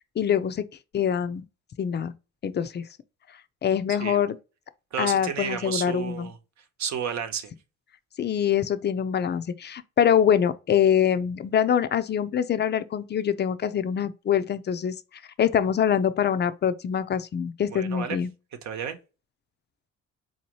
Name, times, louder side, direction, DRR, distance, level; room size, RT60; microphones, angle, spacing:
voice 1, 0.2-0.6 0.9-1.4 1.8-2.1 2.4-2.8 3.6-4.4 5.0-6.3 8.2-14.9 15.4-18.3, left 8 dB, 35° left, 0.5 m, -24 dB
voice 2, 3.9-4.2 4.9-6.4 6.8-7.5 17.7-18.2 18.6-19.0, right 7 dB, 65° right, 0.9 m, -32 dB
3.9 x 2.8 x 3.0 m
cardioid pair, 90°, 30 cm